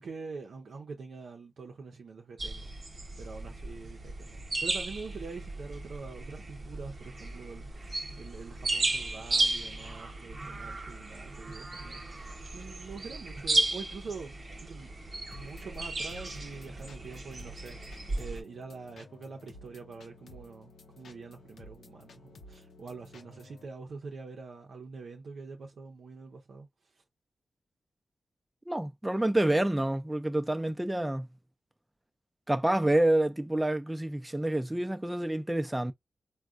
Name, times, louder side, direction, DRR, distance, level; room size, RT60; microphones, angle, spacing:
voice 1, 0.0-2.7 3.2-14.3 14.6-14.9 15.3-27.0, right 4 dB, 80° right, 0.6 m, -45 dB
sound 1, 2.4-18.4, right 2 dB, 50° right, 1.0 m, -35 dB
sound 2, 15.3-23.7, left 2 dB, 85° left, 0.6 m, -53 dB
voice 2, 28.7-31.3 32.5-35.9, right 1 dB, 10° right, 0.5 m, -28 dB
3.6 x 2.2 x 2.4 m
cardioid pair, 70°, 0 cm